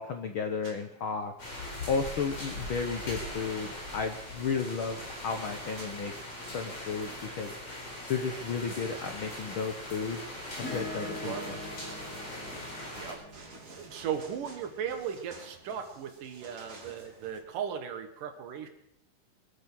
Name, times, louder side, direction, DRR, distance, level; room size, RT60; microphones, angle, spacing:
voice 1, 0.0-1.3 1.9-6.1 6.5-7.1 7.4-7.5 8.1-10.2 10.6-11.6, left 5 dB, 80° left, 6 dB, 1.2 m, -33 dB
sound 1, 0.6-0.9 3.6-6.0 8.5-9.4 10.9-17.4, right 2 dB, 55° right, 4.4 m, -53 dB
sound 2, 1.4-13.1, left 1 dB, 45° left, 5.1 m, -40 dB
Acoustic guitar / Strum, 10.6-15.2 17.0-17.1, left 2 dB, 25° left, 6.6 m, -43 dB
voice 2, 11.2-11.6 13.0-13.2 13.7-18.7, right 8 dB, 75° right, 7 dB, 3.1 m, -37 dB
24.0 x 8.9 x 6.3 m, 0.74 s
omnidirectional pair, 3.8 m